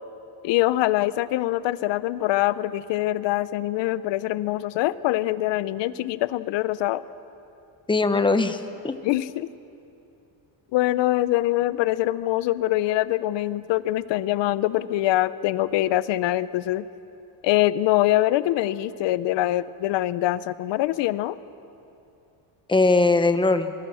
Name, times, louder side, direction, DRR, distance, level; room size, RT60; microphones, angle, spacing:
voice 1, 0.4-7.0 9.0-9.5 10.7-16.9 17.4-21.4, left 15 dB, 65° left, 16 dB, 0.8 m, -24 dB
voice 2, 7.9-9.0 22.7-23.7, left 3 dB, 10° left, 9 dB, 0.9 m, -20 dB
24.5 x 22.0 x 6.4 m, 2.8 s
cardioid pair, 140°, 46 cm